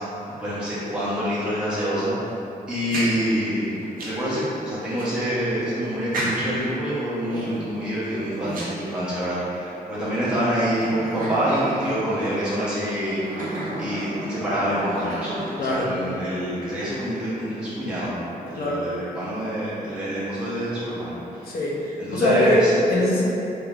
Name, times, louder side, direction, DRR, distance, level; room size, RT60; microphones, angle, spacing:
voice 1, 0.4-2.1 2.7-13.5 13.8-15.3 15.6-18.2 18.4-21.5 22.0-22.7, equal, 5° right, -12 dB, 0.7 m, -26 dB
sound 1, 2.7-4.3 5.0-5.1 6.1-6.7 7.3-9.4 10.0-10.1 10.7-12.3 13.0-15.8, right 1 dB, 65° right, 0.7 m, -33 dB
voice 2, 15.6-15.9 18.5-18.9 21.4-23.2, left 2 dB, 85° left, -4 dB, 0.6 m, -23 dB
3.3 x 3.0 x 2.4 m, 2.9 s
wide cardioid pair, 145°, 15 cm